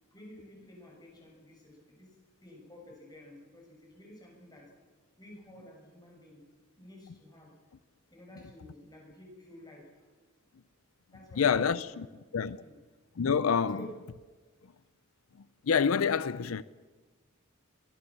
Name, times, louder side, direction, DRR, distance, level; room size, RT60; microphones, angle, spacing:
voice 1, 0.1-4.7 5.2-6.4 6.8-7.5 8.1-10.1 11.1-12.3 12.6-12.7 13.7-13.9, left 1 dB, 20° left, 6.8 m, -52 dB
voice 2, 11.4-12.1 12.3-12.6 13.2-13.8 15.6-16.6, left 6 dB, 80° left, 0.5 m, -27 dB
23.0 x 16.5 x 7.3 m
head